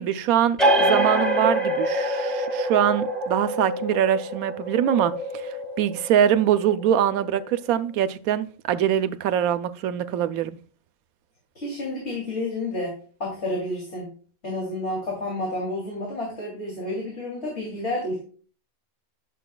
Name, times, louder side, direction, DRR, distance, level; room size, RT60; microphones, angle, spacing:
voice 1, 0.0-10.6, right 10 dB, 80° right, 1.0 m, -23 dB
sound 1, 0.6-7.8, right 1 dB, ahead, 1.6 m, -26 dB
voice 2, 11.5-14.1 14.4-18.2, left 1 dB, 50° left, 2.9 m, -30 dB
11.0 x 6.6 x 2.2 m
omnidirectional pair, 1.5 m